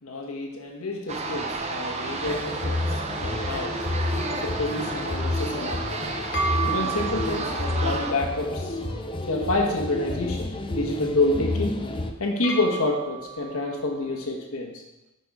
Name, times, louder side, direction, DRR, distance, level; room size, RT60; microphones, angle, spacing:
voice 1, 0.0-2.8 3.2-3.7 4.3-6.0 6.7-8.8 9.3-11.7 12.2-14.7, left 2 dB, 85° left, 1 dB, 1.3 m, -28 dB
sound 1, 1.1-8.1, right 3 dB, 30° right, 0.7 m, -32 dB
sound 2, 2.2-12.1, left 2 dB, 25° left, 0.5 m, -30 dB
sound 3, 6.3-14.2, right 5 dB, 55° left, 1.3 m, -35 dB
10.0 x 5.1 x 4.8 m, 0.96 s
head